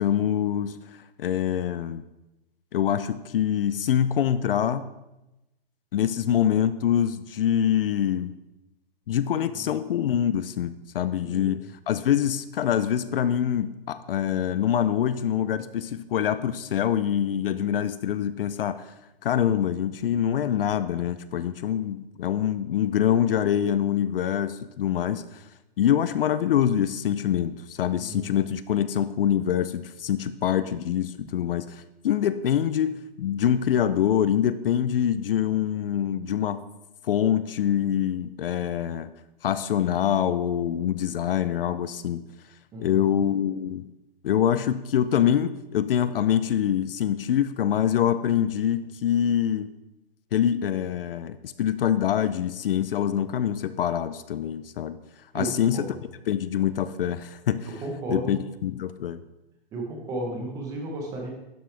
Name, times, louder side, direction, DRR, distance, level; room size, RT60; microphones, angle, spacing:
voice 1, 0.0-2.0 2.7-4.9 5.9-8.3 9.1-11.6 11.9-18.9 19.2-25.4 25.8-36.6 37.0-39.1 39.4-42.2 42.8-43.9 44.2-49.7 50.3-55.0 55.3-55.9 56.3-57.7 58.1-59.2, left 10 dB, 65° left, 14 dB, 0.5 m, -25 dB
voice 2, 11.2-11.6 28.0-28.2 42.7-43.1 55.3-55.9 57.7-58.3 59.7-61.3, right 2 dB, 10° right, 1 dB, 0.9 m, -34 dB
11.5 x 6.2 x 3.4 m, 0.97 s
hypercardioid pair, 170°, 31 cm